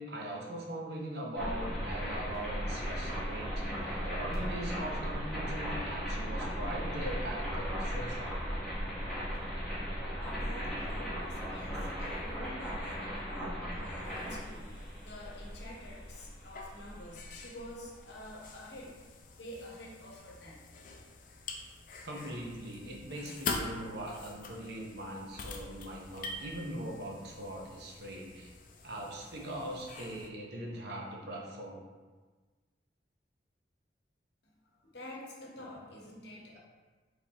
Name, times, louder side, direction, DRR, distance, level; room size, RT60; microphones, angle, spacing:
voice 1, 0.0-8.4 22.1-28.5 28.8-31.8, right 1 dB, 60° right, -1 dB, 0.7 m, -41 dB
sound 1, 1.4-18.3, equal, 5° left, 1.1 m, -37 dB
voice 2, 10.2-19.0 19.4-20.6 34.4-34.5 34.8-36.6, left 1 dB, 60° left, -2 dB, 0.9 m, -48 dB
sound 2, 14.0-30.3, left 3 dB, 45° left, 0.4 m, -45 dB
4.7 x 3.4 x 2.8 m, 1.4 s
head